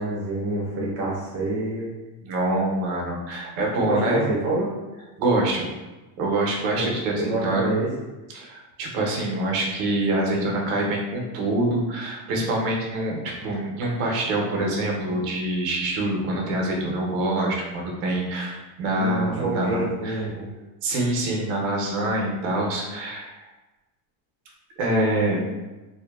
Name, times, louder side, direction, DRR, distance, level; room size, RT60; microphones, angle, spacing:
voice 1, 0.0-1.9 3.8-4.7 6.7-7.9 19.0-20.5, right 2 dB, 30° right, -5 dB, 0.6 m, -27 dB
voice 2, 2.2-4.2 5.2-5.7 6.2-7.7 8.3-20.3 20.8-23.3 24.8-25.4, right 1 dB, 70° right, -1 dB, 0.7 m, -25 dB
2.7 x 2.1 x 2.2 m, 1.1 s
cardioid pair, 175°, 46 cm